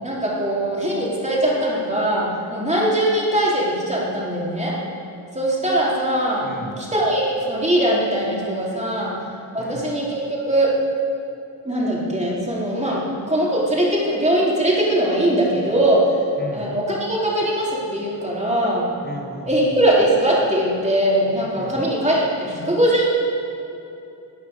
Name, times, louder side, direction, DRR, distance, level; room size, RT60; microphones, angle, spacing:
voice 1, 0.0-4.8 5.3-6.5 6.8-9.2 9.5-10.8 11.6-16.2 16.5-18.8 19.4-23.1, right 1 dB, 15° right, -5 dB, 4.1 m, -21 dB
voice 2, 6.4-6.8 9.6-9.9 16.4-16.7 19.0-19.8 21.6-21.8, left 2 dB, 20° left, 3 dB, 1.8 m, -35 dB
17.0 x 9.5 x 6.7 m, 2.7 s
wide cardioid pair, 85°, 45 cm